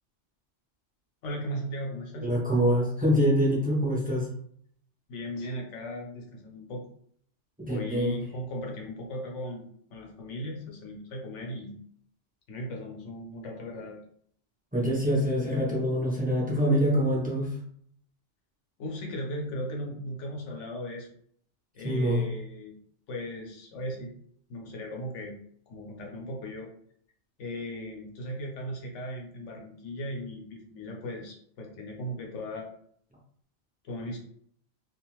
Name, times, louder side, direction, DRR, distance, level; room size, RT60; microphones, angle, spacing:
voice 1, 1.2-2.3 5.1-6.9 7.7-11.8 12.5-14.0 18.8-21.1 21.7-22.7 23.1-24.2 24.5-25.4 25.7-26.7 27.4-32.7 33.8-34.2, equal, 85° left, 0 dB, 1.1 m, -37 dB
voice 2, 2.2-4.3 7.7-8.2 14.7-17.5 21.8-22.3, equal, 10° right, -5 dB, 0.5 m, -25 dB
2.5 x 2.4 x 3.0 m, 0.64 s
omnidirectional pair, 1.2 m